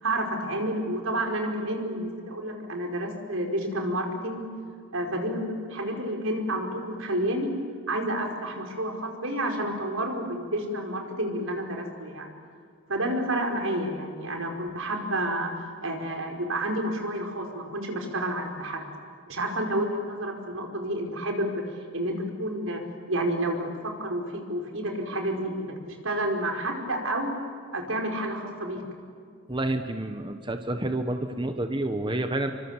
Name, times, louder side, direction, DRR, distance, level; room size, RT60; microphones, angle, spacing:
voice 1, 0.0-4.4 4.9-7.5 7.9-12.3 12.9-18.8 19.3-21.6 21.9-22.8 23.1-27.3 27.7-28.8, right 1 dB, 80° right, 3 dB, 4.9 m, -30 dB
voice 2, 29.5-32.5, right 1 dB, 25° right, 6 dB, 1.2 m, -29 dB
29.0 x 24.5 x 7.4 m, 2.3 s
head